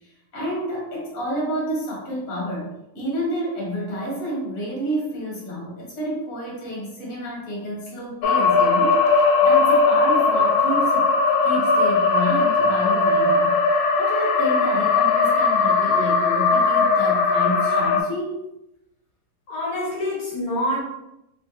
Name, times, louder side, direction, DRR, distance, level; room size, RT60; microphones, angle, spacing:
voice 1, 0.3-2.7 2.9-11.1 11.4-13.6 14.0-18.4, equal, 45° left, -4 dB, 1.6 m, -29 dB
sound 1, 8.2-18.0, left 4 dB, 75° left, 1.4 m, -19 dB
voice 2, 19.5-20.8, left 1 dB, 60° left, -4 dB, 1.6 m, -26 dB
3.6 x 3.2 x 2.8 m, 0.87 s
omnidirectional pair, 2.4 m